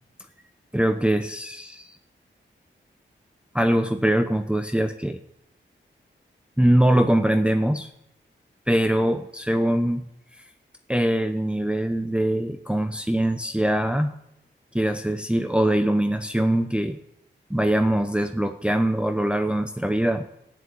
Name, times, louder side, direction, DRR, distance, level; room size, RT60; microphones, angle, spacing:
voice 1, 0.7-1.9 3.5-5.2 6.6-7.9 8.7-10.0 10.9-14.1 14.7-17.0 17.5-20.2, right 1 dB, 5° right, 7 dB, 0.8 m, -22 dB
13.0 x 9.4 x 9.4 m, 0.79 s
cardioid pair, 70°, 20 cm